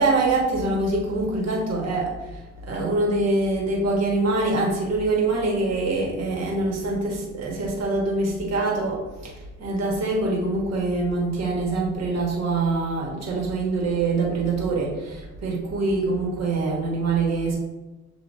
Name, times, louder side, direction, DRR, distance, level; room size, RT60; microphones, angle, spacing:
voice 1, 0.0-17.6, right 3 dB, 60° right, -1 dB, 1.5 m, -24 dB
7.3 x 2.8 x 2.5 m, 1.1 s
cardioid pair, 90°, 30 cm